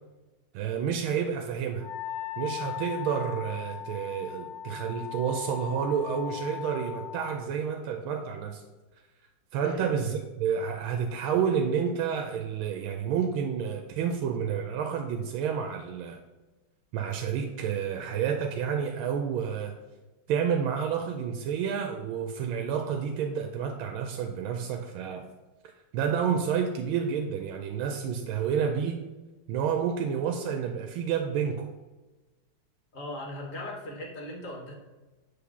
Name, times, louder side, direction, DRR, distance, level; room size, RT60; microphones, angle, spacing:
voice 1, 0.5-1.9 2.4-8.6 9.5-16.2 16.9-19.8 20.3-25.2 25.9-29.0 29.5-31.7, right 7 dB, 90° right, 4 dB, 1.4 m, -29 dB
Wind instrument woodwind instrument, 1.8-7.4, left 10 dB, 75° left, 0.9 m, -38 dB
voice 2, 9.6-10.0 32.9-34.7, left 1 dB, 45° left, 0 dB, 1.3 m, -38 dB
7.8 x 3.4 x 5.9 m, 1.1 s
omnidirectional pair, 2.2 m